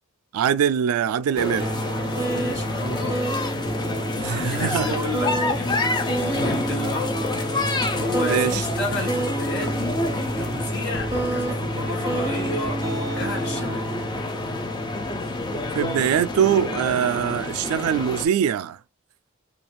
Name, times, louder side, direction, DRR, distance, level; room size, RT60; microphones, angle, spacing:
voice 1, 0.3-1.7 4.2-5.0 8.2-8.6 15.7-18.8, right 8 dB, 85° right, 0.3 m, -23 dB
sound 1, 1.4-18.3, left 2 dB, 20° left, 0.4 m, -29 dB
sound 2, 1.6-16.7, right 1 dB, 15° right, 0.7 m, -29 dB
voice 2, 2.2-3.2 4.2-7.1 8.0-10.0 10.4-13.9, left 2 dB, 55° left, 1.2 m, -32 dB
2.5 x 2.3 x 3.0 m
head